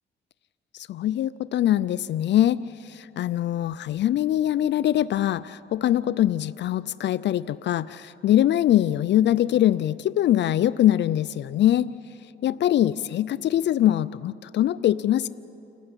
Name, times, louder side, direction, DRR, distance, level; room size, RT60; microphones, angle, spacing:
voice 1, 0.7-11.9 12.4-15.3, left 12 dB, 65° left, 16 dB, 0.5 m, -23 dB
29.0 x 15.0 x 9.7 m, 2.7 s
cardioid pair, 90°, 20 cm